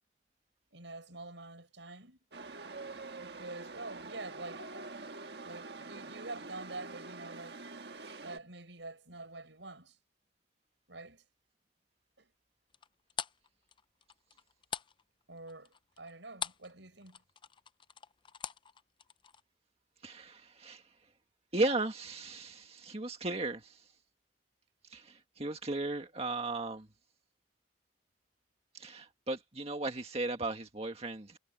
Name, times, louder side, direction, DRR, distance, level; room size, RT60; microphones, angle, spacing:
voice 1, 0.7-2.2 3.2-4.7 5.4-7.6 8.2-10.0 10.9-11.2 12.2-12.3 15.3-17.2, right 2 dB, 80° right, 6.3 m, -46 dB
Chatter / Subway metro underground, 2.3-8.4, right 3 dB, 60° right, 1.5 m, -46 dB
sound 1, 12.7-16.7 17.0-19.4, left 7 dB, 25° left, 0.5 m, -43 dB
voice 2, 20.0-20.8 21.5-23.8 24.9-26.9 28.7-31.4, right 2 dB, 35° right, 1.9 m, -36 dB
head